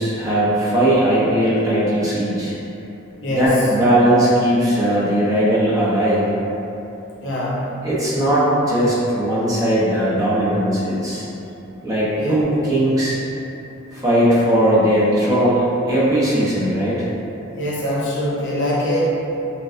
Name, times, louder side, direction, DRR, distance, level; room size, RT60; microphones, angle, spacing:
voice 1, 0.0-2.5 3.4-6.2 7.8-11.3 11.8-13.2 13.9-17.1, right 1 dB, 15° right, -8 dB, 0.8 m, -18 dB
voice 2, 3.2-3.5 7.2-7.7 12.1-12.4 17.6-19.0, left 1 dB, 60° left, -6 dB, 0.9 m, -23 dB
6.0 x 2.3 x 2.6 m, 2.9 s
head